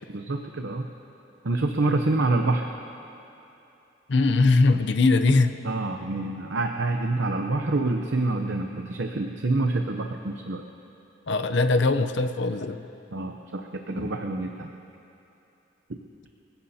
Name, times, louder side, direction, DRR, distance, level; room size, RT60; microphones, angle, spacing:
voice 1, 0.1-0.9 1.4-2.7 5.6-10.6 13.1-14.7, right 2 dB, 65° right, 4 dB, 0.7 m, -27 dB
voice 2, 4.1-5.6 11.3-12.9 14.0-14.1, left 3 dB, 60° left, 9 dB, 0.6 m, -21 dB
27.5 x 17.0 x 2.8 m, 2.9 s
head